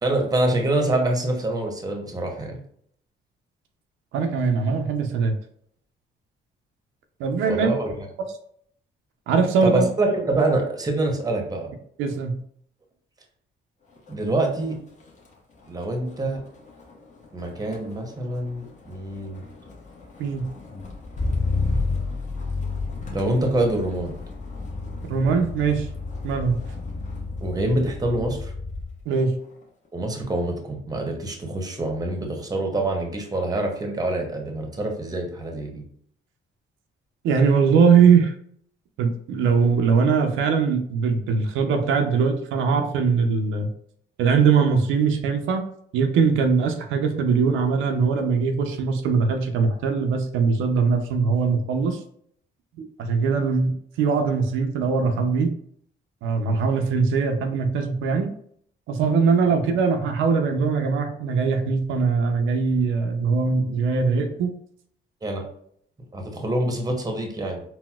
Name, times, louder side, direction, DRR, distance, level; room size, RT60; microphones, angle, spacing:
voice 1, 0.0-2.6 7.4-8.0 9.6-11.7 14.1-14.8 15.7-16.4 17.3-19.4 23.1-24.1 27.4-28.5 29.9-35.8 65.2-65.4 66.1-67.6, right 2 dB, 20° right, 3 dB, 0.7 m, -25 dB
voice 2, 4.1-5.4 7.2-7.7 9.3-9.9 12.0-12.3 20.2-20.5 25.1-25.9 26.2-26.6 29.1-29.3 37.2-38.3 39.0-43.7 44.2-45.7 45.9-52.0 52.8-53.7 54.0-55.5 56.2-58.3 58.9-64.5, right 5 dB, 85° right, 5 dB, 0.4 m, -21 dB
Motor vehicle (road), 13.9-14.3 14.6-29.0 29.4-29.9, left 3 dB, 35° left, 0.8 m, -32 dB
4.0 x 2.0 x 2.2 m, 0.65 s
cardioid pair, 90°, 20 cm